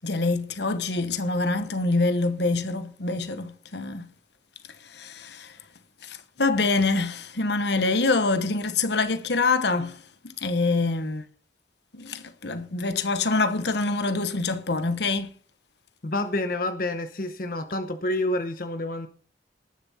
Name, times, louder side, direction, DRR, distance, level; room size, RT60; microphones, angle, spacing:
voice 1, 0.0-4.1 4.8-5.6 6.0-11.2 11.9-15.3, left 3 dB, 65° left, 1.2 m, -25 dB
voice 2, 16.0-19.1, left 1 dB, 50° left, 0.9 m, -28 dB
19.0 x 7.3 x 4.3 m
head